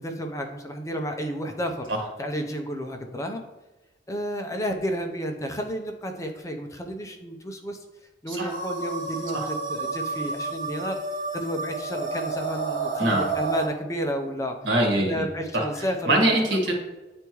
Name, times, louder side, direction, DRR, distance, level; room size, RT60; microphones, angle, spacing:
voice 1, 0.0-1.8 2.2-3.5 4.1-7.8 8.2-11.0 11.3-14.5 15.0-16.6, equal, 15° left, 4 dB, 0.5 m, -31 dB
sound 1, 8.5-13.7, right 4 dB, 50° right, 2.0 m, -30 dB
voice 2, 14.6-15.3 15.5-15.6 16.1-16.7, right 1 dB, 85° right, 1 dB, 1.7 m, -23 dB
9.4 x 3.4 x 3.0 m, 1.1 s
head